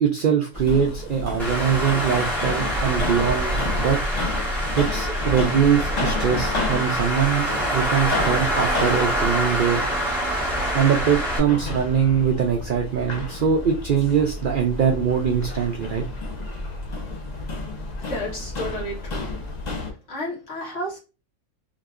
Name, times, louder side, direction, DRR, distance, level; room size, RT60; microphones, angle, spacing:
voice 1, 0.0-4.0 4.8-7.5 7.7-9.8 10.7-16.0, right 7 dB, 70° right, 3 dB, 0.5 m, -22 dB
sound 1, 0.5-19.9, left 2 dB, 45° left, 0.6 m, -31 dB
Traffic noise roadway noise, 1.4-11.4, right 1 dB, ahead, 1.3 m, -25 dB
voice 2, 18.0-19.4 20.1-21.0, equal, 60° left, -3 dB, 1.6 m, -32 dB
3.8 x 2.7 x 2.4 m, 0.31 s
omnidirectional pair, 1.5 m